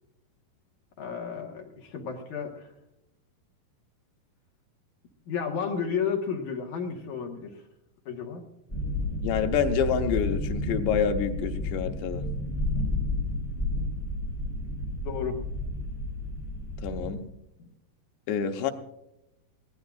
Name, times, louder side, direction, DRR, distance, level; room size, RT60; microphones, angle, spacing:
voice 1, 1.0-2.7 5.3-7.5 8.1-8.4 15.0-15.4 17.6-17.7, left 6 dB, 55° left, 1 dB, 2.4 m, -32 dB
sound 1, 8.7-17.1, left 1 dB, 10° left, 3.4 m, -31 dB
voice 2, 9.2-12.2 16.8-17.2 18.3-18.7, left 7 dB, 90° left, 6 dB, 3.2 m, -27 dB
21.0 x 16.0 x 2.4 m, 0.86 s
omnidirectional pair, 4.8 m